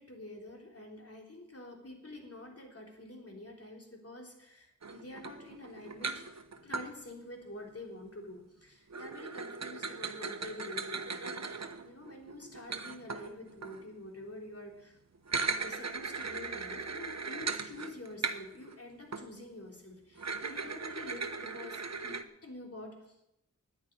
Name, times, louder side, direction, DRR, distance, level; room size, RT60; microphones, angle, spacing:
voice 1, 0.0-6.3 6.6-15.0 15.6-23.2, left 1 dB, 50° left, 1 dB, 3.6 m, -47 dB
sound 1, 4.8-6.9 8.9-13.9 15.1-18.8 19.1-19.3 20.2-22.2, right 4 dB, 55° right, 1.0 m, -38 dB
10.5 x 9.6 x 8.8 m, 0.82 s
cardioid pair, 40°, 31 cm